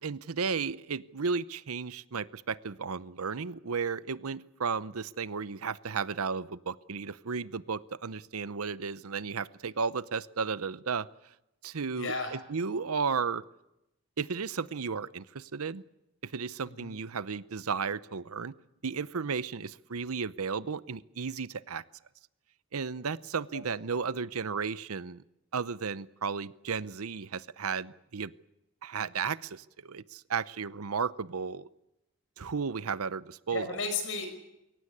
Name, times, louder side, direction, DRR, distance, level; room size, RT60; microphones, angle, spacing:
voice 1, 0.0-11.1 11.6-13.4 14.2-15.8 16.2-18.5 18.8-21.8 22.7-25.2 25.5-28.3 28.8-31.7 32.4-33.7, right 5 dB, 85° right, 17 dB, 0.8 m, -34 dB
voice 2, 11.9-12.3 16.7-16.9 23.5-23.7 33.5-34.3, left 4 dB, 60° left, 7 dB, 5.6 m, -34 dB
22.5 x 17.5 x 9.8 m, 0.90 s
head